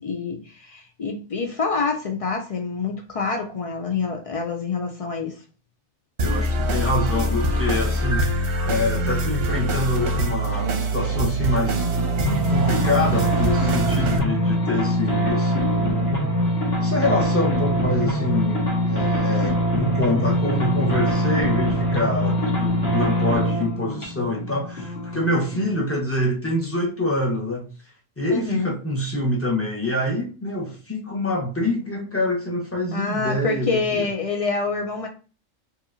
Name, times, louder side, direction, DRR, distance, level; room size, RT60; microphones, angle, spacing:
voice 1, 0.0-5.4 28.3-28.7 32.9-35.1, left 4 dB, 65° left, 0.3 m, -26 dB
voice 2, 6.2-8.3 8.6-11.9 12.5-16.1 16.8-27.7 28.2-34.1, left 1 dB, 10° left, 0.9 m, -26 dB
sound 1, 6.2-14.2, right 2 dB, 55° right, 0.9 m, -24 dB
sound 2, 11.7-25.8, equal, 50° left, 1.8 m, -23 dB
4.8 x 2.9 x 2.6 m
omnidirectional pair, 1.4 m